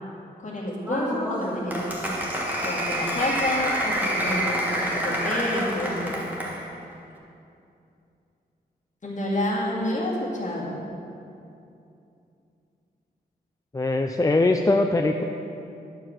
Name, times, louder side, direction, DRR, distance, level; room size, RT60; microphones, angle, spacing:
voice 1, 0.4-2.0 2.6-6.4 9.0-10.8, left 1 dB, 45° left, -4 dB, 2.1 m, -29 dB
Applause, 0.8-6.6, equal, 10° right, 1.4 m, -28 dB
voice 2, 13.7-15.2, left 2 dB, 20° left, 4 dB, 0.4 m, -21 dB
10.5 x 4.6 x 7.5 m, 2.6 s
wide cardioid pair, 100°, 17 cm